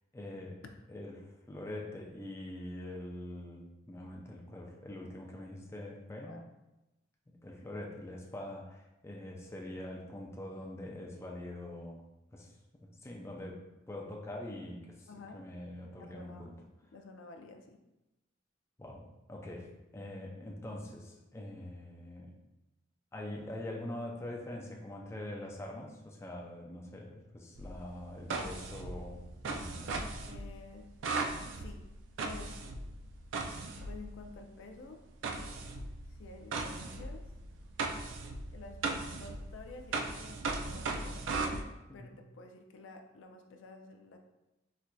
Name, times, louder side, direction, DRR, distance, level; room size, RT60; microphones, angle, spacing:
voice 1, 0.1-0.6 0.9-6.4 7.4-12.0 12.3-12.6 12.8-13.6 13.9-16.5 18.8-22.4 23.1-30.2 41.9-42.1, left 1 dB, 15° left, -1 dB, 0.4 m, -44 dB
voice 2, 15.1-15.4 16.0-16.6 16.9-17.8 30.3-30.9 31.5-31.8 32.2-32.7 33.9-35.0 36.1-37.3 38.5-38.8 39.1-44.2, left 3 dB, 85° left, 4 dB, 0.4 m, -51 dB
sound 1, 27.6-34.4 35.2-41.6, right 3 dB, 85° right, 0.4 m, -38 dB
4.3 x 2.5 x 2.2 m, 0.97 s
head